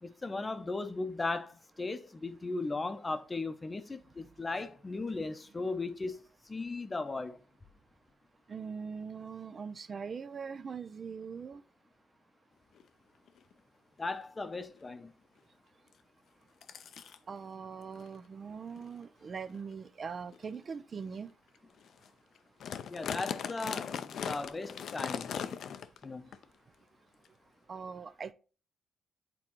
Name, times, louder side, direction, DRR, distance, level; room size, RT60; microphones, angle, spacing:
voice 1, 0.0-6.2 6.5-7.4 14.0-15.1 22.9-25.5 26.0-26.3, left 3 dB, 25° left, 0.7 m, -37 dB
voice 2, 8.5-11.6 17.3-21.3 27.7-28.3, right 6 dB, 40° right, 0.3 m, -41 dB
sound 1, 12.8-12.9 13.3-13.5 14.1-14.2 14.5-14.8 15.9-16.0 16.6-17.2 17.9-18.1 18.7-18.9 19.5-19.6 20.3-20.5 21.0-21.1 21.5-21.6 21.8-22.1 22.4-26.0 26.3-26.4 27.2-27.3, left 8 dB, 65° left, 0.5 m, -39 dB
8.6 x 3.7 x 3.0 m
cardioid pair, 90°, 0 cm